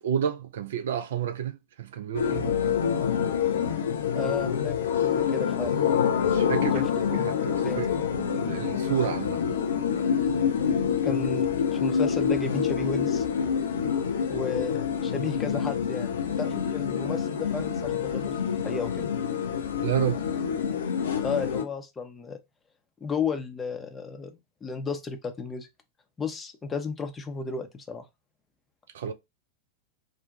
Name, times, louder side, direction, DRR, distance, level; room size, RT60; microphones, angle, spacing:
voice 1, 0.0-2.8 6.2-9.6 19.8-20.2 28.9-29.1, right 9 dB, 60° right, 0.3 m, -31 dB
sound 1, 2.1-21.6, left 7 dB, 65° left, 0.5 m, -27 dB
voice 2, 4.1-5.8 6.7-6.9 7.6-7.8 11.0-13.3 14.3-19.1 21.2-22.4 23.0-24.3 24.6-25.7 26.2-28.0, left 4 dB, 15° left, 0.6 m, -33 dB
2.5 x 2.1 x 3.9 m
figure-of-eight pair, 90°, 0 cm